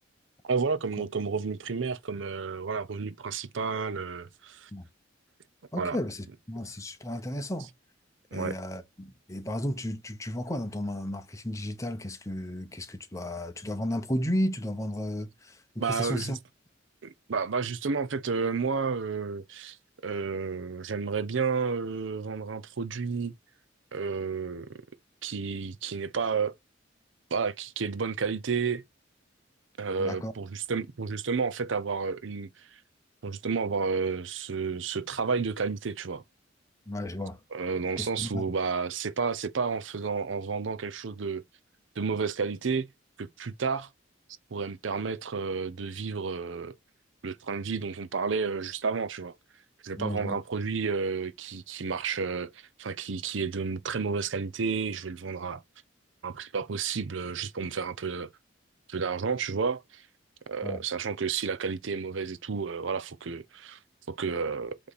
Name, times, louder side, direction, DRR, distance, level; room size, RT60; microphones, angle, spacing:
voice 1, 0.4-4.7 5.8-6.0 8.3-8.6 15.8-16.4 17.0-19.8 20.0-23.3 23.9-24.8 25.2-26.5 27.3-28.8 29.8-32.8 33.2-36.2 37.5-41.4 42.0-42.9 43.2-43.9 44.5-46.7 47.2-49.3 49.8-55.6 56.2-58.3 58.9-60.1 60.5-63.8 64.1-64.8, right 5 dB, 75° right, 0.6 m, -31 dB
voice 2, 5.7-7.7 8.3-16.4 30.0-30.3 36.9-37.4 38.0-38.4 50.0-50.4 60.6-60.8, left 1 dB, 15° left, 1.0 m, -33 dB
8.3 x 3.2 x 4.1 m
head